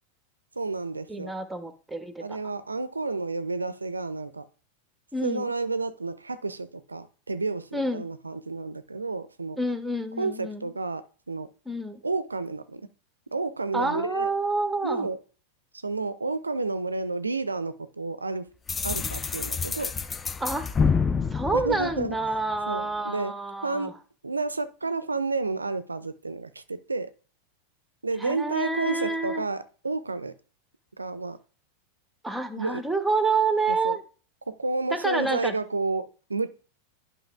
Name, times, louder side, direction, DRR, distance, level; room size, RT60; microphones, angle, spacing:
voice 1, 0.6-1.3 2.2-4.5 5.2-9.6 10.2-11.5 12.0-12.8 13.3-14.3 14.8-15.2 15.8-18.5 18.8-19.9 21.5-22.2 22.7-23.3 23.6-23.9 24.2-27.1 28.0-30.3 31.0-31.4 32.6-32.8 33.7-34.0 34.5-36.5, right 3 dB, 80° right, 0.4 m, -31 dB
voice 2, 1.1-2.4 5.1-5.5 7.7-8.1 9.6-10.7 11.7-12.0 13.7-15.1 20.4-20.7 21.3-23.9 28.2-29.4 32.2-34.0 34.9-35.5, right 3 dB, 5° right, 0.8 m, -28 dB
sound 1, 18.7-22.5, left 5 dB, 15° left, 0.3 m, -28 dB
11.0 x 5.4 x 2.3 m
figure-of-eight pair, 90°, 0 cm